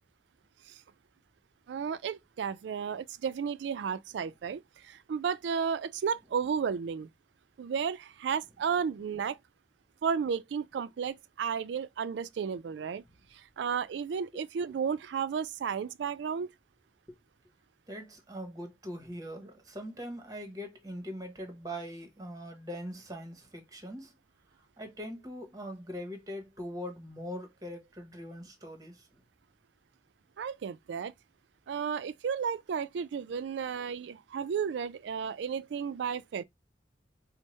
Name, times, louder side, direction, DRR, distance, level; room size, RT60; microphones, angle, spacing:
voice 1, 1.7-7.1 7.6-9.4 10.0-13.0 13.3-16.5 30.4-31.1 31.7-36.4, right 6 dB, 75° right, 0.3 m, -33 dB
voice 2, 17.9-24.1 24.8-29.1, equal, 20° right, 0.9 m, -42 dB
4.5 x 2.0 x 3.1 m
head